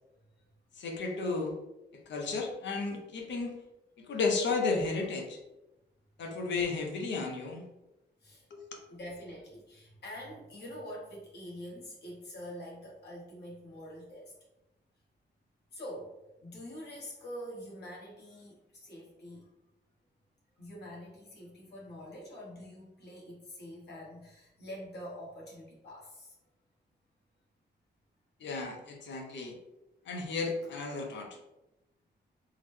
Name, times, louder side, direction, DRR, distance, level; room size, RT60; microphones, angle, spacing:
voice 1, 0.8-1.5 1.9-3.6 4.0-5.4 6.2-7.6 8.5-8.8 28.4-29.6 30.1-31.4, left 4 dB, 80° left, 2 dB, 0.7 m, -33 dB
voice 2, 8.9-14.3 15.7-16.1 16.4-19.5 20.6-26.4, equal, 65° left, -4 dB, 1.2 m, -45 dB
3.7 x 2.1 x 3.1 m, 0.96 s
wide cardioid pair, 165°, 18 cm